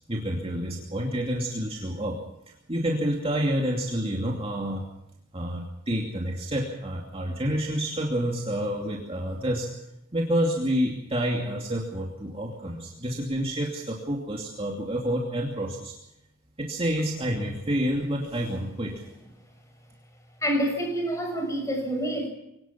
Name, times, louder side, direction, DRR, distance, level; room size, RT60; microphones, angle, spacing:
voice 1, 0.1-2.2 2.5-4.8 5.3-9.7 10.1-16.0 16.6-19.0, equal, 25° right, 0 dB, 2.6 m, -28 dB
voice 2, 20.4-22.3, equal, 15° left, 3 dB, 5.9 m, -27 dB
24.0 x 18.5 x 6.0 m, 0.86 s
head